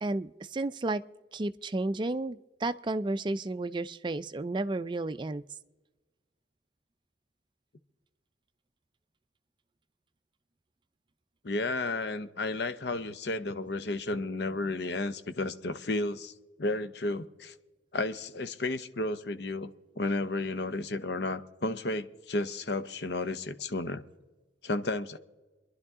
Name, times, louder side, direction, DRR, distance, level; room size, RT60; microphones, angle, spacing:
voice 1, 0.0-1.0 1.3-5.4, right 2 dB, 25° right, 12 dB, 0.4 m, -32 dB
voice 2, 11.4-16.3 16.6-17.5 17.9-19.7 20.0-24.0 24.6-25.2, left 2 dB, 65° left, 11 dB, 0.7 m, -32 dB
28.5 x 11.0 x 3.6 m, 1.2 s
head